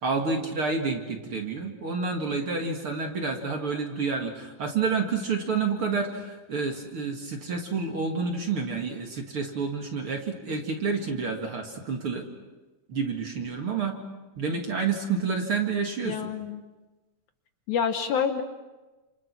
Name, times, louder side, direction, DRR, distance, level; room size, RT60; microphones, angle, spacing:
voice 1, 0.0-12.3 12.9-14.0 14.4-16.2, right 4 dB, 45° right, 3 dB, 2.4 m, -29 dB
voice 2, 16.1-16.6 17.7-18.4, left 7 dB, 65° left, 7 dB, 2.2 m, -27 dB
29.0 x 28.0 x 6.1 m, 1.2 s
omnidirectional pair, 4.2 m